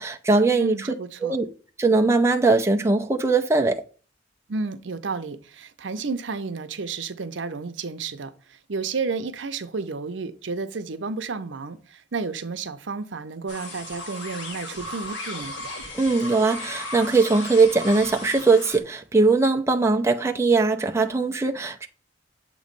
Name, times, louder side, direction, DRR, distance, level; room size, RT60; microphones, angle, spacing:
voice 1, 0.0-0.8 1.2-1.5 1.8-3.8 15.9-21.9, right 3 dB, 15° right, 0.5 m, -20 dB
voice 2, 0.5-1.4 4.5-8.3 8.7-15.5, right 4 dB, 85° right, 0.7 m, -31 dB
sound 1, 13.5-18.8, left 1 dB, 80° left, 1.9 m, -36 dB
7.4 x 3.1 x 5.2 m
head